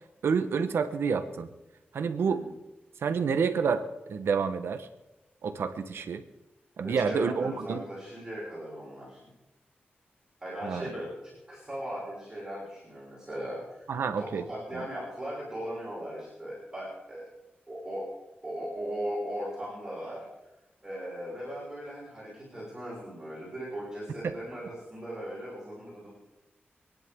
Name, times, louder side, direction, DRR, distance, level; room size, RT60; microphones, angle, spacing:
voice 1, 0.2-1.5 1.9-2.4 3.0-3.8 4.1-4.9 5.4-6.2 6.8-7.8 10.6-10.9 13.9-14.5 14.7-14.8 24.2-24.3, right 6 dB, 90° right, 9 dB, 1.1 m, -28 dB
voice 2, 6.8-9.2 10.4-13.9 14.2-17.3 17.7-18.1 18.4-20.3 20.8-26.1, equal, 15° right, -8 dB, 6.2 m, -38 dB
26.5 x 10.5 x 3.7 m, 1.0 s
wide cardioid pair, 140°, 4 cm